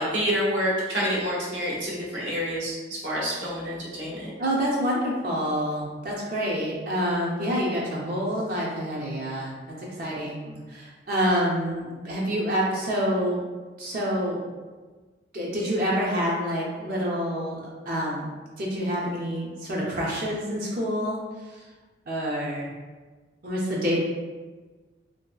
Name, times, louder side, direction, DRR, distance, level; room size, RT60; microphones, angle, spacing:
voice 1, 0.0-4.3, equal, 75° right, -5 dB, 0.9 m, -28 dB
voice 2, 4.4-9.5 10.0-13.4 13.8-14.4 15.3-18.3 18.6-21.2 21.5-21.6 22.1-22.7 23.4-24.0, equal, 50° right, -4 dB, 0.5 m, -27 dB
2.9 x 2.7 x 2.3 m, 1.3 s
head